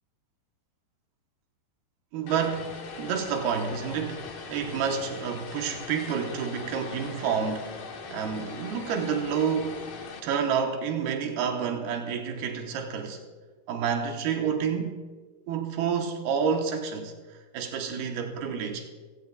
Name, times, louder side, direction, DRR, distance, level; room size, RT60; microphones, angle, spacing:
voice 1, 2.1-7.8 8.1-9.8 10.2-13.2 13.7-15.0 15.5-17.1 17.5-18.9, right 6 dB, 85° right, 3.1 m, -29 dB
Vehicle, 2.3-10.2, left 5 dB, 65° left, 3.1 m, -41 dB
23.0 x 16.5 x 2.4 m
omnidirectional pair, 4.4 m